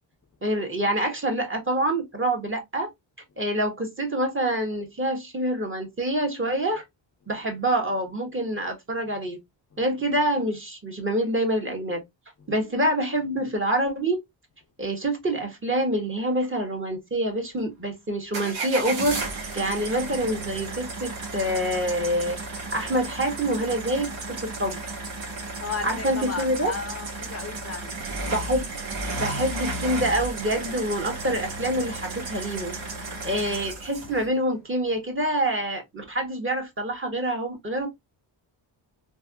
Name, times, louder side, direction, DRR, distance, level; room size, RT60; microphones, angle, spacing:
voice 1, 0.4-2.9 3.4-6.8 7.3-9.4 9.8-12.0 12.5-14.2 14.8-19.2 19.5-22.4 22.7-24.8 25.8-26.7 28.3-28.7 29.1-32.7 33.2-37.9, right 1 dB, 25° right, 1.4 m, -26 dB
sound 1, 18.3-34.3, right 2 dB, 70° right, 1.4 m, -33 dB
voice 2, 25.6-27.9, left 5 dB, 30° left, 0.5 m, -34 dB
3.4 x 2.6 x 2.3 m
cardioid pair, 75°, 47 cm